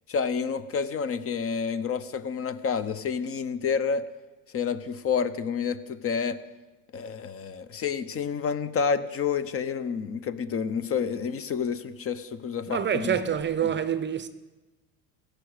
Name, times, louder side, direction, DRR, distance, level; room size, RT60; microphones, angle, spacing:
voice 1, 0.1-4.1 4.5-6.4 6.9-13.2 13.6-13.7, left 6 dB, 30° left, 0.7 m, -29 dB
voice 2, 12.7-14.3, right 8 dB, 25° right, 0.6 m, -27 dB
16.0 x 6.3 x 6.5 m
hypercardioid pair, 90°, 44 cm